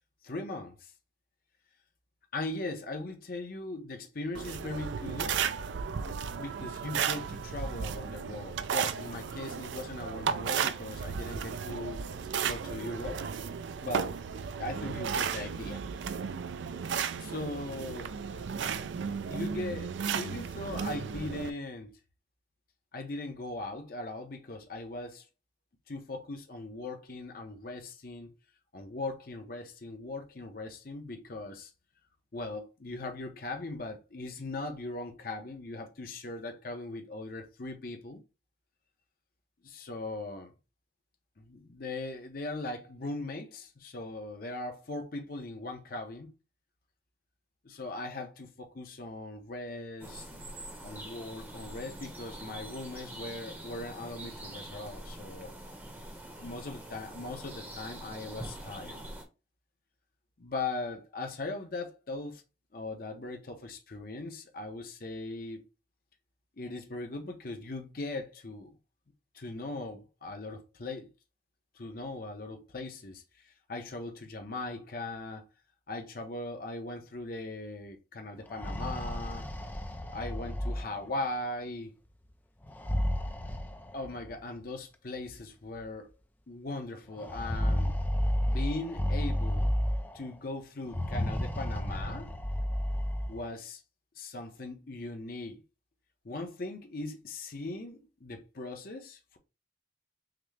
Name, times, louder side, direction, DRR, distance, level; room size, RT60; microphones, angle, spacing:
voice 1, 0.2-0.9 2.3-5.4 6.4-12.1 12.4-13.2 13.8-14.1 14.6-15.8 17.2-18.2 19.3-21.9 22.9-25.2 25.9-28.3 28.7-31.7 32.3-38.2 39.6-40.5 41.4-46.3 47.6-50.3 50.8-55.5 56.4-59.0 60.4-62.4 62.7-65.6 66.6-68.7 69.3-71.1 71.7-75.5 75.9-79.5 80.1-81.9 83.9-86.1 86.5-87.9 88.5-89.7 90.1-92.3 93.3-93.8 94.2-95.6 96.2-99.4, left 2 dB, 50° left, 0.7 m, -39 dB
sound 1, 4.3-21.5, right 7 dB, 75° right, 0.4 m, -34 dB
sound 2, 50.0-59.2, right 1 dB, 10° right, 0.7 m, -44 dB
sound 3, 78.4-81.3 82.6-84.3 85.3-85.4 85.8-85.9 87.2-90.3 90.8-93.4, equal, 10° left, 0.3 m, -32 dB
5.8 x 2.0 x 3.2 m
head